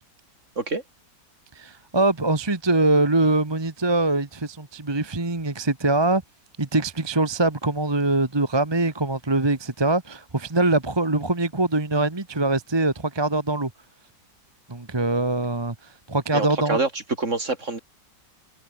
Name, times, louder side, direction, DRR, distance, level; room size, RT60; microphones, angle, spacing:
voice 1, 1.5-6.2 6.6-13.7 14.7-15.7 16.1-16.8, right 2 dB, 15° right, 1.2 m, -23 dB
voice 2, 16.3-17.8, right 3 dB, 40° right, 3.7 m, -26 dB
omnidirectional pair, 1.9 m